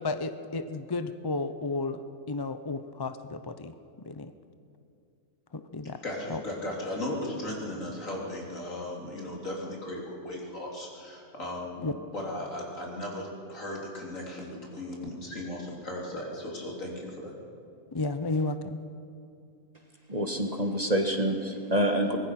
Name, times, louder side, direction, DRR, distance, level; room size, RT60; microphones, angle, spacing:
voice 1, 0.0-2.0 2.3-3.7 4.1-4.3 5.5-6.0 6.3-6.4 11.8-11.9 17.9-18.8, left 3 dB, 30° left, 10 dB, 0.4 m, -32 dB
voice 2, 6.0-17.3, left 1 dB, 70° left, -2 dB, 3.8 m, -36 dB
voice 3, 20.1-22.2, right 1 dB, 30° right, 4 dB, 1.5 m, -27 dB
24.0 x 20.0 x 5.9 m, 2.6 s
omnidirectional pair, 1.4 m